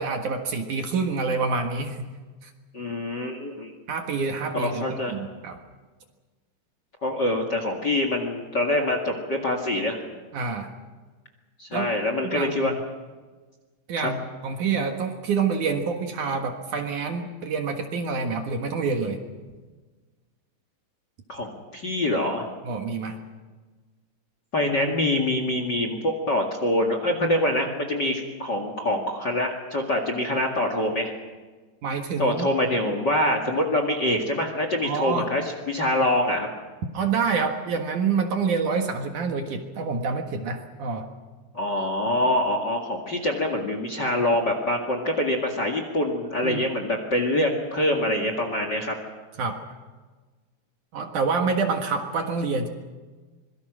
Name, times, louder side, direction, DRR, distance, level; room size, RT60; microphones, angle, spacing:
voice 1, 0.0-2.1 2.4-2.5 3.9-5.6 10.3-10.7 11.7-11.9 12.2-12.8 13.9-19.2 22.6-23.2 31.8-32.5 34.8-35.3 36.9-41.1 46.4-46.6 49.4-49.6 50.9-52.7, right 5 dB, 60° right, 4 dB, 2.7 m, -27 dB
voice 2, 2.7-3.7 4.5-5.1 7.0-10.0 11.6-12.7 14.0-14.1 21.3-22.5 24.5-31.1 32.2-35.4 35.7-36.5 41.5-49.0, left 1 dB, 35° left, 5 dB, 2.0 m, -25 dB
25.5 x 22.5 x 6.3 m, 1.3 s
omnidirectional pair, 4.5 m